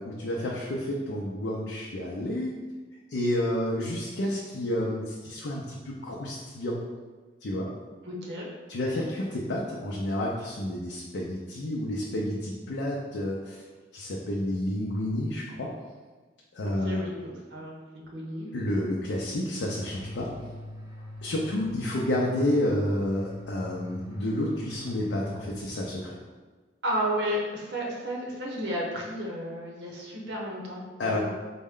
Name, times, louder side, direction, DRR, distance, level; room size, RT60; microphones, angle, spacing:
voice 1, 0.0-2.5 3.1-6.8 7.4-7.7 8.7-13.6 13.9-15.7 16.5-17.0 18.5-20.3 21.2-26.2 31.0-31.2, left 1 dB, 80° left, -3 dB, 0.5 m, -30 dB
voice 2, 8.0-8.5 16.6-17.7 18.1-18.5 26.8-31.2, equal, 75° right, -3 dB, 0.8 m, -32 dB
sound 1, 19.9-26.0, left 1 dB, 20° right, 0.6 m, -43 dB
4.2 x 2.1 x 3.6 m, 1.4 s
head